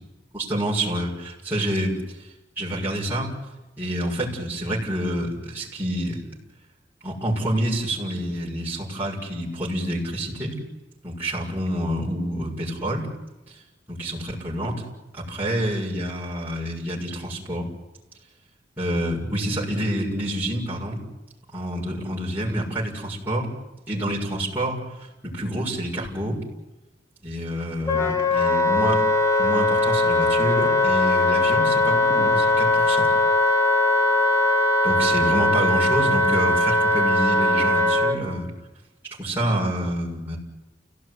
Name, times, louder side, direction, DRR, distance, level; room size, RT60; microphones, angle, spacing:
voice 1, 0.3-2.0 2.6-3.3 3.8-6.2 7.0-10.6 11.0-13.1 13.9-14.8 15.1-17.7 18.8-21.0 21.5-23.5 23.9-24.9 25.2-26.4 27.2-29.0 29.4-33.1 34.8-38.5 39.2-40.4, right 1 dB, 10° right, -7 dB, 7.0 m, -27 dB
Wind instrument woodwind instrument, 27.9-38.2, left 2 dB, 15° left, 2.4 m, -20 dB
29.5 x 18.0 x 9.9 m, 1.0 s
head